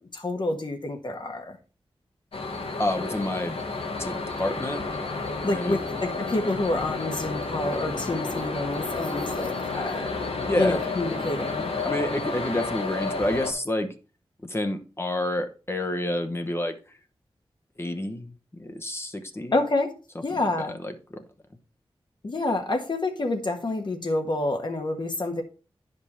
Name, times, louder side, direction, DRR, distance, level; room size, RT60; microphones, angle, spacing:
voice 1, 0.0-1.6 5.4-10.1 10.5-11.7 19.5-19.9 20.2-20.7 22.2-25.4, left 2 dB, 55° left, 4 dB, 1.5 m, -28 dB
sound 1, 2.3-13.5, left 3 dB, 80° left, 1.5 m, -31 dB
voice 2, 2.8-3.6 4.0-4.8 5.4-5.8 10.4-10.9 11.8-13.9 14.4-16.8 17.8-19.5 20.6-21.2, left 1 dB, 25° left, 7 dB, 1.0 m, -29 dB
9.6 x 5.3 x 4.3 m, 0.34 s
wide cardioid pair, 75°, 10 cm